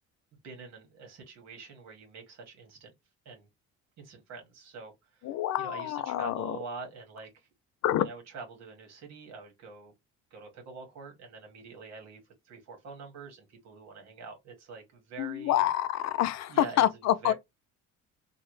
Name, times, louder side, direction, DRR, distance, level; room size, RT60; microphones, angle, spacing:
voice 1, 0.4-2.9 3.2-3.5 4.0-5.3 5.6-7.5 7.9-9.9 10.3-15.6 16.5-17.3, right 4 dB, 60° right, 1.6 m, -45 dB
voice 2, 5.2-6.6 7.8-8.1 15.2-17.3, left 12 dB, 60° left, 0.5 m, -27 dB
3.2 x 2.4 x 3.1 m
cardioid pair, 120°, 31 cm